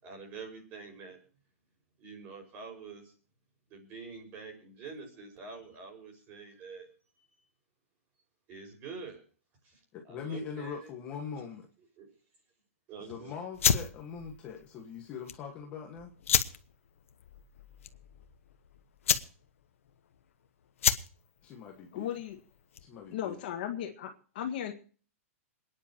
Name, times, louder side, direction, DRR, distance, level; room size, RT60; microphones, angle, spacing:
voice 1, 0.0-1.2 2.0-3.1 3.7-6.9 7.1-7.5 8.5-9.2 9.6-10.9 11.4-11.5 12.0-12.1 12.9-13.4, right 4 dB, 25° right, 3 dB, 5.5 m, -46 dB
voice 2, 9.9-11.7 13.1-16.1 21.4-22.1 22.8-23.4, left 6 dB, 20° left, 1 dB, 1.6 m, -42 dB
sound 1, 13.5-23.1, left 8 dB, 65° left, 1.2 m, -32 dB
voice 3, 21.9-22.4 23.1-24.7, left 10 dB, 40° left, 4 dB, 1.8 m, -36 dB
27.0 x 10.0 x 3.0 m, 0.40 s
hypercardioid pair, 175°, 8 cm